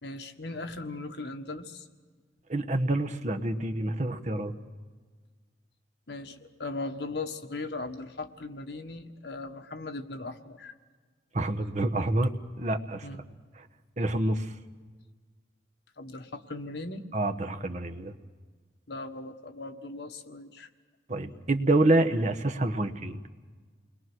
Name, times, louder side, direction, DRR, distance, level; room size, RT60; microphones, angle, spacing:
voice 1, 0.0-1.9 6.1-10.7 13.0-13.2 16.0-17.1 18.9-20.7, left 3 dB, 70° left, 5 dB, 1.5 m, -38 dB
voice 2, 2.5-4.5 11.3-13.1 14.0-14.5 17.1-18.1 21.1-23.2, right 2 dB, 40° right, 6 dB, 1.2 m, -27 dB
29.0 x 21.5 x 6.2 m, 1.5 s
head